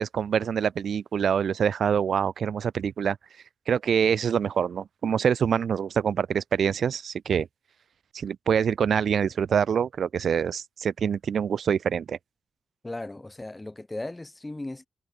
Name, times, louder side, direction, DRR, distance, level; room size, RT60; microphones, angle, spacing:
voice 1, 0.0-3.2 3.7-7.5 8.1-12.2, right 7 dB, 65° right, 1.5 m, -25 dB
voice 2, 12.8-14.9, left 2 dB, 15° left, 2.4 m, -36 dB
wide cardioid pair, 125°, 0 cm